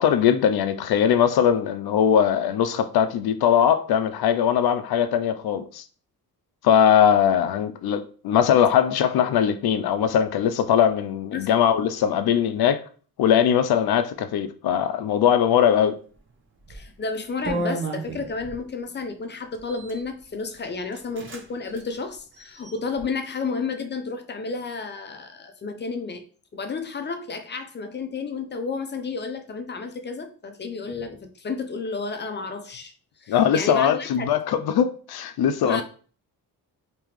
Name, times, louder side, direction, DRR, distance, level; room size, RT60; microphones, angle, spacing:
voice 1, 0.0-5.8 6.6-12.8 13.2-16.0 33.3-35.8, left 9 dB, 75° left, 0.5 m, -20 dB
sound 1, 16.6-16.9 17.4-18.6 19.5-20.0 20.6-20.7 20.9-21.4 21.7-21.8 22.3-23.0, right 2 dB, 30° right, 0.8 m, -32 dB
voice 2, 16.7-26.2 26.5-32.9 33.2-34.3 35.6-35.8, left 4 dB, 30° left, 0.5 m, -31 dB
3.6 x 2.9 x 3.1 m
wide cardioid pair, 130°, 38 cm